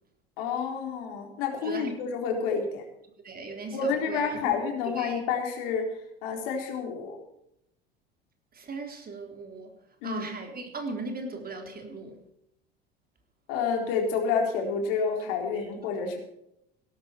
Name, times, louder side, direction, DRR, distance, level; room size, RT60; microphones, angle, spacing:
voice 1, 0.4-2.8 3.7-5.9 6.2-7.2 10.0-10.3 13.5-16.2, left 5 dB, 65° left, 3.9 m, -29 dB
voice 2, 3.2-4.6 4.9-5.2 8.5-9.7 10.0-12.2, right 3 dB, 30° right, 3.7 m, -37 dB
17.5 x 12.5 x 4.5 m
hypercardioid pair, 75°, 30 cm